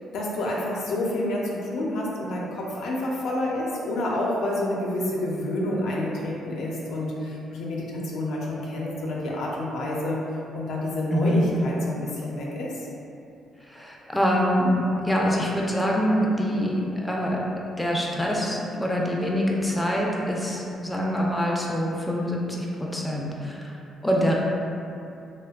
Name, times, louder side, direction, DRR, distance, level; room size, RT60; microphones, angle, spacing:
voice 1, 0.0-10.2 10.5-12.8, left 1 dB, 80° left, -4 dB, 0.4 m, -28 dB
voice 2, 11.1-11.4 13.7-17.4 17.8-22.7 22.9-23.7 24.0-24.3, equal, 5° left, -3 dB, 0.3 m, -25 dB
2.7 x 2.1 x 2.3 m, 2.6 s
cardioid pair, 90°, 0 cm